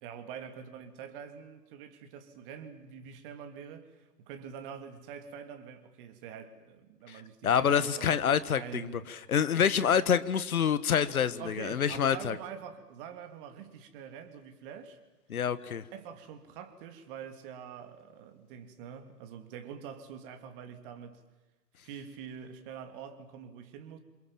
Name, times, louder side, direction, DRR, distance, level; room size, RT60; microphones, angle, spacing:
voice 1, 0.0-8.2 8.6-9.1 11.4-15.0 15.9-21.2 21.8-24.0, right 8 dB, 35° right, 7 dB, 3.2 m, -45 dB
voice 2, 7.4-8.9 9.3-12.4 15.3-15.8, left 8 dB, 60° left, 15 dB, 1.7 m, -26 dB
27.5 x 27.0 x 7.5 m, 1.1 s
figure-of-eight pair, 125°, 48 cm